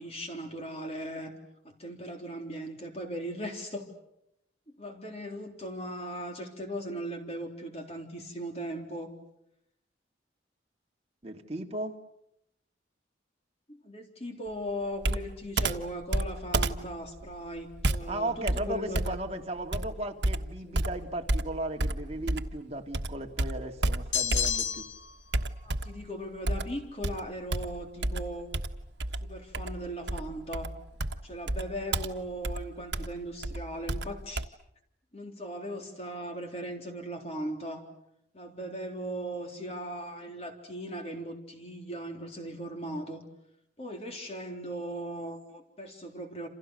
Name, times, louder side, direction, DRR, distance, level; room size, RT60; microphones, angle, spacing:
voice 1, 0.0-1.3 1.6-3.9 4.8-9.1 13.7-19.2 20.6-20.8 25.6-28.5 29.2-30.7 31.2-34.5 35.1-37.8 38.3-43.2 43.8-46.5, equal, 35° left, 3 dB, 3.7 m, -38 dB
voice 2, 11.2-11.9 18.1-24.9, right 1 dB, 35° right, 3 dB, 2.3 m, -36 dB
Computer keyboard, 15.0-22.6 22.9-24.8 25.3-26.1 26.5-34.5, right 2 dB, 70° right, 1.4 m, -31 dB
sound 1, 24.1-25.1, left 9 dB, 85° left, 1.6 m, -29 dB
29.0 x 28.0 x 6.5 m, 0.80 s
head